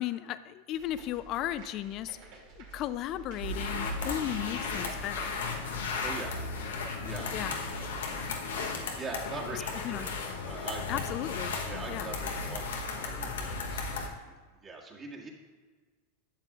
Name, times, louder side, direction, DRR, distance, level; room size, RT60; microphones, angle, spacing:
voice 1, 0.0-2.2 2.6-5.3 7.3-7.5 9.5-10.1 10.9-11.5 11.9-12.1, left 13 dB, 45° left, 14 dB, 0.4 m, -35 dB
sound 1, 0.7-7.3, right 4 dB, 60° right, 2.5 m, -50 dB
sound 2, 3.4-14.1, left 4 dB, 80° left, 1.0 m, -35 dB
voice 2, 5.9-6.4 7.0-7.3 9.0-10.1 10.4-11.0 11.6-14.2 14.5-15.3, right 3 dB, 30° right, -2 dB, 1.9 m, -42 dB
11.5 x 7.4 x 2.4 m, 1.4 s
hypercardioid pair, 100°, 0 cm